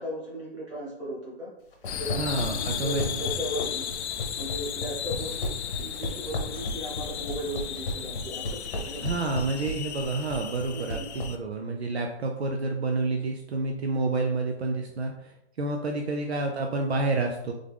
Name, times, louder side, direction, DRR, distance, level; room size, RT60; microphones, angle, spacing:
voice 1, 0.0-1.5 1.9-3.9 4.3-5.5 5.8-9.1 10.7-11.1, equal, 25° right, -6 dB, 1.6 m, -36 dB
sound 1, 1.7-11.3, left 1 dB, 50° left, 0.9 m, -33 dB
sound 2, 1.8-11.4, left 9 dB, 70° left, 0.5 m, -35 dB
voice 2, 2.2-3.0 9.0-17.5, right 3 dB, 65° right, 2 dB, 0.6 m, -29 dB
3.5 x 3.5 x 3.5 m, 0.83 s
hypercardioid pair, 180°, 35 cm